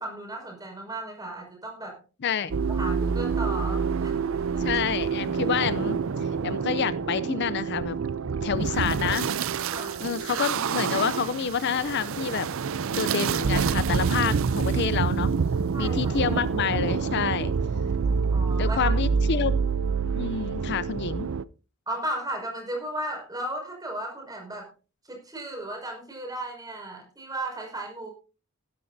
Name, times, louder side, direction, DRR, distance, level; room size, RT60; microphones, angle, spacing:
voice 1, 0.0-2.0 2.7-4.6 9.7-10.1 15.7-16.4 18.3-19.0 21.9-24.7 25.0-28.1, right 1 dB, 20° right, 1 dB, 5.5 m, -35 dB
sound 1, 2.5-21.4, right 5 dB, 65° right, 0.5 m, -27 dB
voice 2, 4.6-8.0 8.4-9.3 10.0-12.5 12.9-15.3 15.8-17.5 18.6-19.5 20.2-21.3, left 7 dB, 55° left, 16 dB, 0.5 m, -28 dB
16.0 x 13.0 x 2.7 m, 0.33 s
head